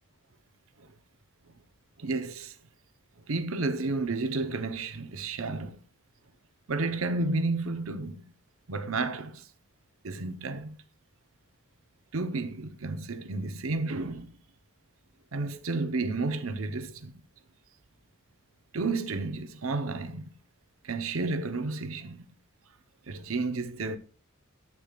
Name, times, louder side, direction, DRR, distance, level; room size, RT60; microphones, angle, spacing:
voice 1, 2.0-2.6 3.3-5.8 6.7-8.2 8.7-9.5 10.0-10.8 12.1-14.3 15.3-17.1 18.7-20.3 20.8-22.2 23.1-24.0, right 3 dB, 70° right, 0.9 m, -31 dB
11.0 x 8.3 x 2.4 m
head